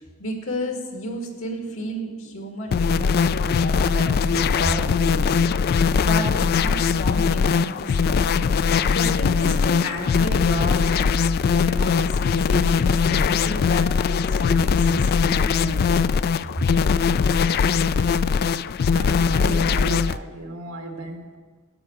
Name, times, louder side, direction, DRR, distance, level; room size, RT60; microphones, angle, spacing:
voice 1, 0.2-5.6 6.0-8.4 8.9-11.1 11.6-16.1 16.5-16.6, left 1 dB, 70° left, 2 dB, 2.2 m, -32 dB
sound 1, 2.7-20.2, left 5 dB, 45° left, 0.3 m, -21 dB
voice 2, 18.9-21.4, right 2 dB, 90° right, 3 dB, 1.8 m, -35 dB
13.0 x 5.7 x 9.2 m, 1.4 s
head